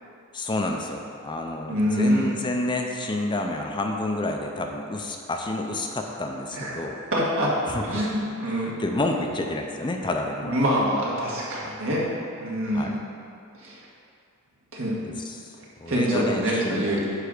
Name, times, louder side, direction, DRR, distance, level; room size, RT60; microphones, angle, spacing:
voice 1, 0.3-7.0 7.7-8.0 8.5-10.9 11.6-11.7 12.7-12.9 15.1-17.0, left 2 dB, 20° left, 2 dB, 0.5 m, -30 dB
voice 2, 1.7-2.3 6.5-7.5 7.8-8.7 10.4-12.1 12.4-12.9 13.6-13.8 14.7-14.9 15.9-17.0, equal, 65° right, -5 dB, 1.8 m, -25 dB
9.7 x 3.4 x 6.5 m, 2.5 s
head